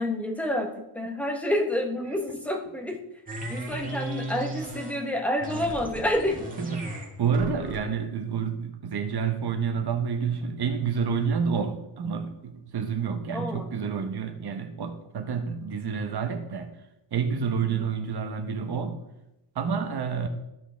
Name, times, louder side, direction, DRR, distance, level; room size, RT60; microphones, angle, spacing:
voice 1, 0.0-3.0 3.5-6.5 13.3-13.7 17.7-17.8, left 1 dB, 5° left, 3 dB, 0.8 m, -28 dB
sound 1, 3.3-5.1 5.4-8.0, right 2 dB, 15° right, 1.8 m, -36 dB
voice 2, 6.6-16.7 17.1-19.0 19.5-20.3, right 6 dB, 50° right, 6 dB, 1.0 m, -29 dB
13.5 x 5.2 x 3.3 m, 0.90 s
wide cardioid pair, 160°, 50 cm